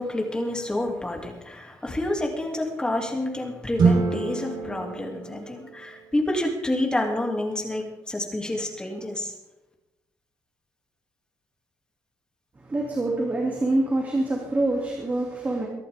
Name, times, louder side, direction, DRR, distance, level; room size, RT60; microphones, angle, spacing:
voice 1, 0.0-9.3, left 1 dB, 10° left, 1 dB, 2.5 m, -28 dB
sound 1, 3.8-6.2, right 4 dB, 70° right, 4.2 m, -25 dB
voice 2, 12.6-15.7, right 2 dB, 25° right, -1 dB, 2.6 m, -25 dB
23.5 x 11.5 x 3.6 m, 1.0 s
wide cardioid pair, 155°, 7 cm